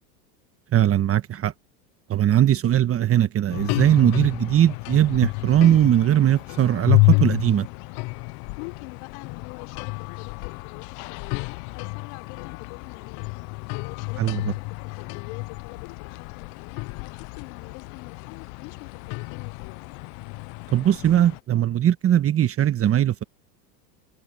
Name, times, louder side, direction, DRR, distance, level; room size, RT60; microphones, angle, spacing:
voice 1, 0.7-1.5 2.1-7.7 14.2-14.4 20.7-23.2, right 11 dB, 30° right, 1.4 m, -20 dB
sound 1, 3.5-21.4, left 29 dB, 40° left, 0.4 m, -29 dB
voice 2, 8.6-13.3 13.7-19.8, left 31 dB, 60° left, 5.7 m, -45 dB
supercardioid pair, 115°, 48 cm